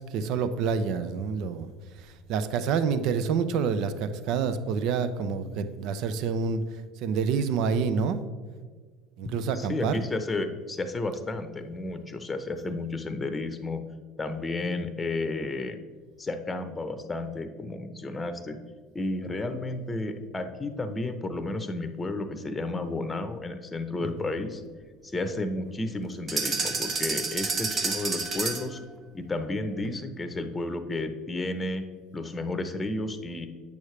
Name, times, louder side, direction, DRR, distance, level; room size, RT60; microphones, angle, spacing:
voice 1, 0.0-1.7 2.0-6.6 7.0-8.2 9.2-10.1, right 6 dB, 65° right, 11 dB, 0.5 m, -27 dB
voice 2, 9.5-13.8 14.2-15.8 16.2-18.6 18.9-24.6 25.0-28.8 29.1-31.8 32.1-33.5, left 2 dB, 20° left, 8 dB, 0.8 m, -32 dB
sound 1, 26.3-28.8, right 4 dB, 40° right, 1.1 m, -29 dB
8.5 x 6.4 x 3.2 m, 1.5 s
hypercardioid pair, 80°, 0 cm